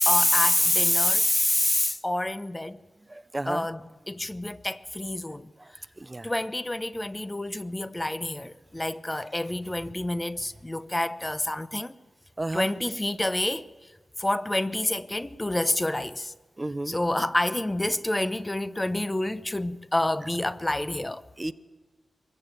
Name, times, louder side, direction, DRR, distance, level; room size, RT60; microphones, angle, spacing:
voice 1, 0.0-2.8 3.5-5.5 6.2-11.9 12.5-13.7 14.2-16.3 16.9-21.2, left 1 dB, 20° left, 0.9 m, -27 dB
voice 2, 3.1-3.7 5.6-5.7 6.0-6.3 12.4-12.7 16.6-17.0 21.4-21.5, right 2 dB, 25° right, 0.9 m, -32 dB
24.0 x 15.0 x 9.2 m
cardioid pair, 45°, 0 cm